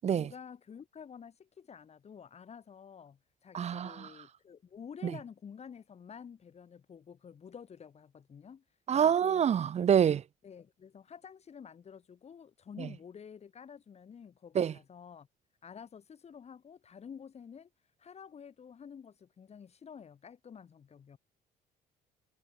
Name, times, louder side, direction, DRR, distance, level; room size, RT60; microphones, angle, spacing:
voice 1, 0.1-8.6 8.9-9.4 9.8-9.9 10.4-15.3 15.6-17.7 18.0-21.2, left 7 dB, 40° left, 4.2 m, -50 dB
voice 2, 3.5-4.1 5.0-5.1 8.9-10.2 12.8-12.9 14.5-14.7, right 8 dB, 40° right, 0.9 m, -26 dB
cardioid pair, 110°, 17 cm